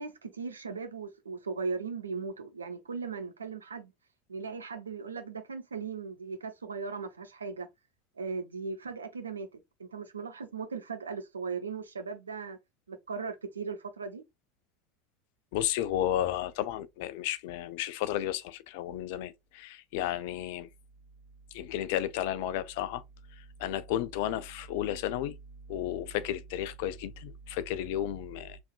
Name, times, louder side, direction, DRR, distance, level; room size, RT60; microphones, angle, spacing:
voice 1, 0.0-3.9 4.3-7.7 8.2-12.6 12.9-14.2, right 5 dB, 80° right, 0.6 m, -38 dB
voice 2, 15.5-20.7 21.5-23.0 23.4-25.4 25.7-28.6, left 11 dB, 55° left, 0.5 m, -33 dB
3.5 x 3.5 x 2.4 m
figure-of-eight pair, 75°, 0 cm